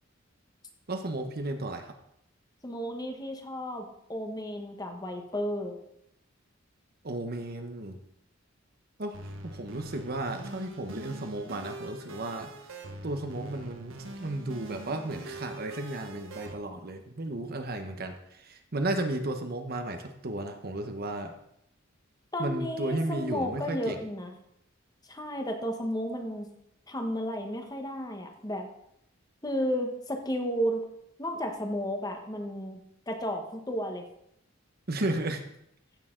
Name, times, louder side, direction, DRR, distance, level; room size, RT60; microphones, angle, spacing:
voice 1, 0.9-1.9 7.0-8.0 9.0-9.2 9.4-12.5 13.0-21.3 22.4-24.0 34.9-35.4, right 2 dB, 50° right, 6 dB, 1.1 m, -34 dB
voice 2, 2.6-5.8 22.3-24.3 25.1-26.5 26.9-28.7 29.4-30.9 31.2-34.0, equal, 20° left, 4 dB, 1.2 m, -33 dB
sound 1, 9.1-16.5, right 2 dB, 85° right, 1.4 m, -44 dB
15.0 x 6.8 x 3.8 m, 0.76 s
head